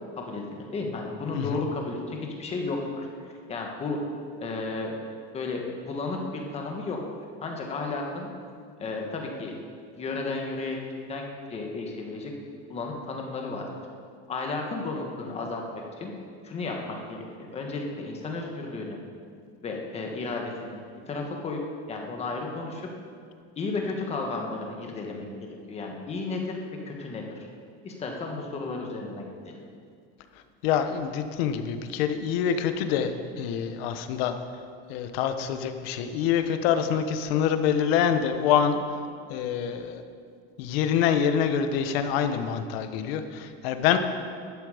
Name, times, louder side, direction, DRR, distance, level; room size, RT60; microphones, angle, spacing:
voice 1, 0.7-4.0 4.4-4.9 5.3-7.0 7.4-8.3 8.8-9.5 10.0-10.8 11.0-12.3 12.7-13.6 14.3-16.1 16.4-17.2 17.5-19.0 19.6-20.8 21.1-21.6 21.9-22.9 23.5-25.3 25.7-27.4 27.8-29.5, left 3 dB, 20° left, 1 dB, 1.5 m, -33 dB
voice 2, 1.3-1.6 30.6-34.4 34.9-38.8 39.3-40.0 40.6-44.0, left 8 dB, 65° left, 8 dB, 1.1 m, -26 dB
15.0 x 12.0 x 5.1 m, 2.3 s
cardioid pair, 175°, 32 cm